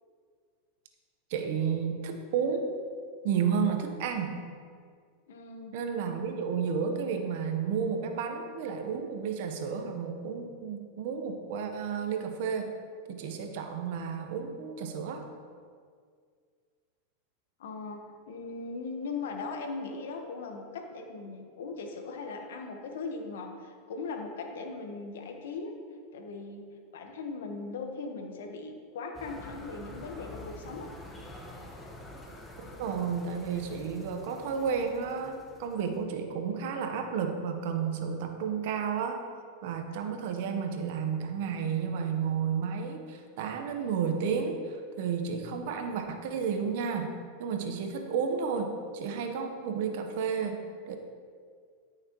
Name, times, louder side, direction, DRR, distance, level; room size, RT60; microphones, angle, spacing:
voice 1, 1.3-2.7 3.2-4.4 5.7-12.7 13.1-15.3 32.8-39.2 39.6-47.1 47.4-51.0, right 6 dB, 65° right, 5 dB, 1.2 m, -32 dB
voice 2, 5.3-5.7 17.6-25.7 26.1-26.6 26.9-30.9, left 4 dB, 80° left, 3 dB, 1.4 m, -39 dB
sound 1, 29.1-36.0, left 1 dB, 15° left, 1.6 m, -47 dB
13.5 x 6.5 x 3.2 m, 2.1 s
hypercardioid pair, 110°, 0 cm